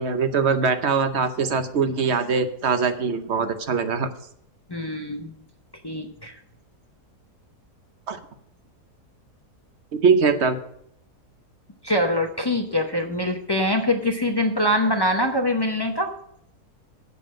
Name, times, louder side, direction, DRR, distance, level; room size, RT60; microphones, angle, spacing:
voice 1, 0.0-4.1 8.1-8.2 10.0-10.6, right 5 dB, 50° right, 9 dB, 1.0 m, -22 dB
voice 2, 4.7-5.4 5.8-6.4 11.8-16.1, left 1 dB, 35° left, 3 dB, 0.4 m, -24 dB
8.2 x 7.0 x 7.5 m, 0.72 s
omnidirectional pair, 1.7 m